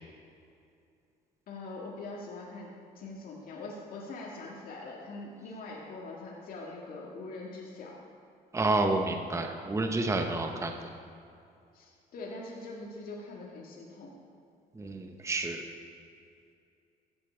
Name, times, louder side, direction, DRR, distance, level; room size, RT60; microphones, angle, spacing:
voice 1, 1.5-2.7 3.0-8.0 11.7-14.1, left 2 dB, 60° left, -3 dB, 2.0 m, -43 dB
voice 2, 8.5-10.7 14.8-15.6, right 2 dB, 15° right, 4 dB, 0.9 m, -29 dB
15.0 x 8.6 x 4.5 m, 2.5 s
cardioid pair, 110°, 17 cm